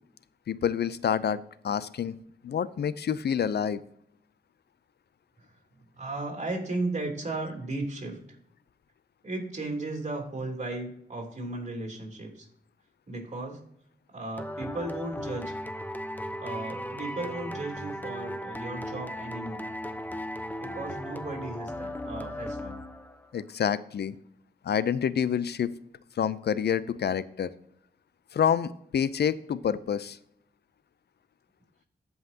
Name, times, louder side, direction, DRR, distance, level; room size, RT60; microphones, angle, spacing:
voice 1, 0.5-2.1 2.4-3.8 23.3-24.2 24.6-25.7 26.2-27.5 28.3-30.2, left 8 dB, 70° left, 17 dB, 0.5 m, -28 dB
voice 2, 6.0-8.2 9.2-12.5 13.1-13.6 14.1-15.5 16.4-19.6 20.6-22.8, right 2 dB, 45° right, 0 dB, 3.4 m, -35 dB
sound 1, 14.4-23.3, equal, 10° left, 0.9 m, -37 dB
15.5 x 5.6 x 2.8 m, 0.74 s
cardioid pair, 60°, 17 cm